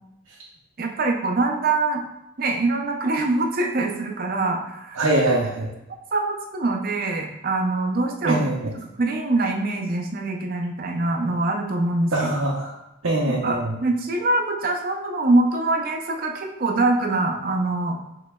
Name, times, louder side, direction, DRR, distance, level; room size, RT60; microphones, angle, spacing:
voice 1, 0.8-2.0 2.4-5.0 6.1-8.4 9.0-12.1 13.4-18.0, right 2 dB, 45° right, 3 dB, 0.5 m, -23 dB
voice 2, 5.0-5.7 8.2-8.7 12.1-12.7 13.0-13.7, right 2 dB, 85° right, -3 dB, 0.7 m, -22 dB
5.1 x 3.8 x 2.3 m, 0.89 s
head